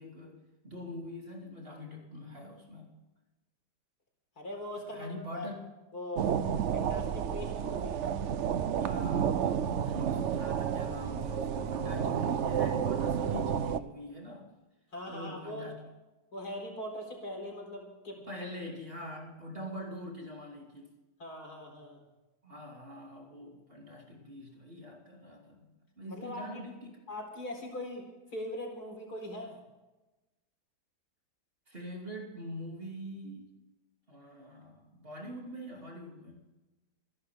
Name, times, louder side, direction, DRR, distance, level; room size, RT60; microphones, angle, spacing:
voice 1, 0.0-2.9 4.9-5.6 8.7-14.5 15.1-15.8 18.1-20.9 22.4-27.0 31.7-33.5 34.1-36.5, left 1 dB, 35° right, 0 dB, 3.0 m, -44 dB
voice 2, 4.4-5.5 5.9-6.3 6.7-8.0 14.9-15.7 16.3-18.5 21.2-22.0 26.1-26.6 27.1-28.0 28.3-29.6, left 1 dB, 65° left, 2 dB, 4.6 m, -41 dB
sound 1, 6.2-13.8, right 8 dB, 55° right, 0.9 m, -31 dB
27.0 x 11.5 x 3.6 m, 1.1 s
omnidirectional pair, 1.8 m